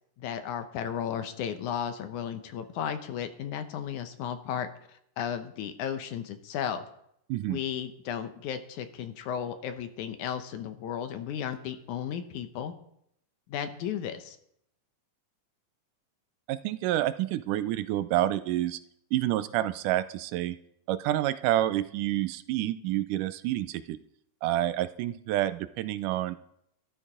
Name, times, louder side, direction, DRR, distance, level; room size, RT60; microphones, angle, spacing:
voice 1, 0.2-6.9 7.5-12.7 13.5-14.4, left 8 dB, 75° left, 9 dB, 2.3 m, -34 dB
voice 2, 16.5-18.8 19.1-20.6 20.9-24.0 24.4-26.4, right 14 dB, 80° right, 13 dB, 2.1 m, -28 dB
13.0 x 12.0 x 5.0 m, 0.74 s
omnidirectional pair, 3.7 m